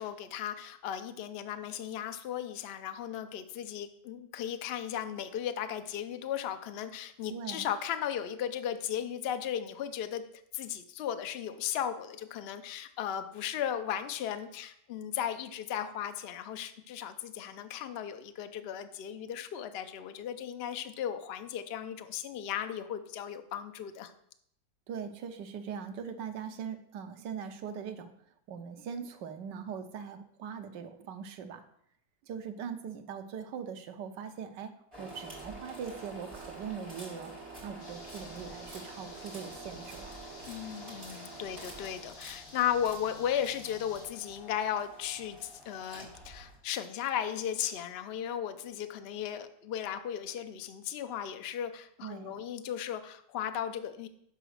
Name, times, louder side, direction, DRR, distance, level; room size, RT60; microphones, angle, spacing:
voice 1, 0.0-24.1 40.5-54.1, left 9 dB, 75° left, 9 dB, 0.5 m, -36 dB
voice 2, 7.2-7.7 24.9-28.1 28.5-31.6 32.2-34.7 35.0-37.3 37.6-40.2 52.0-52.3, right 7 dB, 85° right, 8 dB, 1.4 m, -41 dB
sound 1, 34.9-46.5, right 2 dB, 15° right, 4.0 m, -47 dB
sound 2, 37.8-44.1, left 3 dB, 50° left, 1.6 m, -52 dB
6.7 x 5.0 x 6.4 m, 0.72 s
omnidirectional pair, 1.9 m